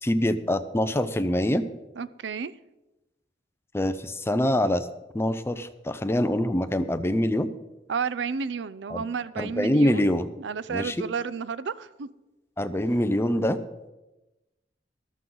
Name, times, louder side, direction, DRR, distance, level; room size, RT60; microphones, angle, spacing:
voice 1, 0.0-1.6 3.7-4.9 5.1-7.5 8.9-9.0 9.4-10.3 10.7-11.0 12.6-13.6, left 1 dB, 15° left, 11 dB, 0.6 m, -24 dB
voice 2, 2.0-2.5 7.9-10.1 10.4-12.1, right 6 dB, 75° right, 17 dB, 0.5 m, -31 dB
14.0 x 12.5 x 3.9 m, 1.0 s
head